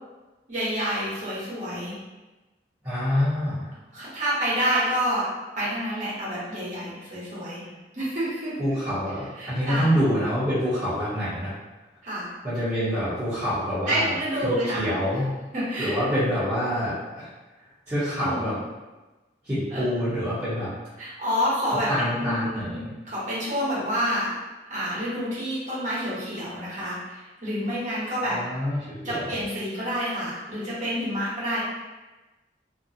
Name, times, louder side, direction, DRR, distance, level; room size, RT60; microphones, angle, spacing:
voice 1, 0.5-2.0 3.9-5.2 5.6-7.6 7.9-8.6 9.4-10.0 12.0-12.3 13.8-14.9 15.5-16.0 18.2-18.4 19.7-19.9 21.0-22.8 23.0-24.3 24.7-28.4 29.0-31.6, equal, 45° right, -9 dB, 1.0 m, -28 dB
voice 2, 2.8-3.7 8.6-11.5 12.4-14.1 14.4-15.3 15.8-17.3 17.9-18.6 19.4-20.7 21.9-22.9 28.3-29.3, equal, 20° right, -16 dB, 0.9 m, -26 dB
2.6 x 2.2 x 2.5 m, 1.1 s
head